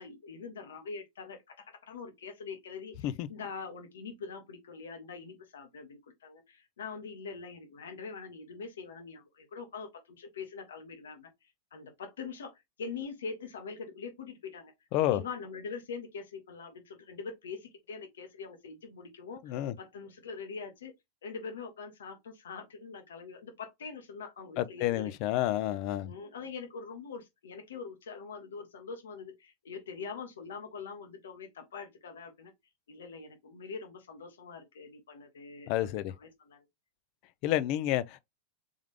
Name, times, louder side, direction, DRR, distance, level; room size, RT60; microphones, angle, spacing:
voice 1, 0.0-14.7 15.1-20.9 21.2-25.1 26.0-32.5 32.9-35.9 36.2-36.6, left 5 dB, 90° left, 1.2 m, -43 dB
voice 2, 19.4-19.7 24.6-26.1 35.7-36.1 37.4-38.2, left 14 dB, 55° left, 0.5 m, -29 dB
3.6 x 3.6 x 3.3 m
hypercardioid pair, 115°, 0 cm